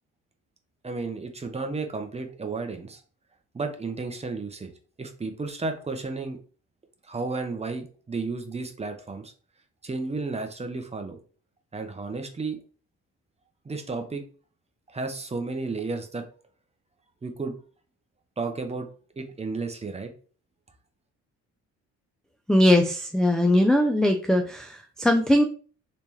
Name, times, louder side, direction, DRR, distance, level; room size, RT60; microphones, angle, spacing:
voice 1, 0.8-3.0 3.5-4.7 5.0-6.4 7.0-9.3 9.8-11.2 11.7-12.6 13.6-14.2 14.9-16.3 17.2-17.6 18.4-18.9 19.2-20.1, right 3 dB, 20° right, 6 dB, 0.8 m, -32 dB
voice 2, 22.5-25.4, left 1 dB, ahead, 4 dB, 0.4 m, -20 dB
3.3 x 3.2 x 2.9 m, 0.39 s
cardioid pair, 90°, 30 cm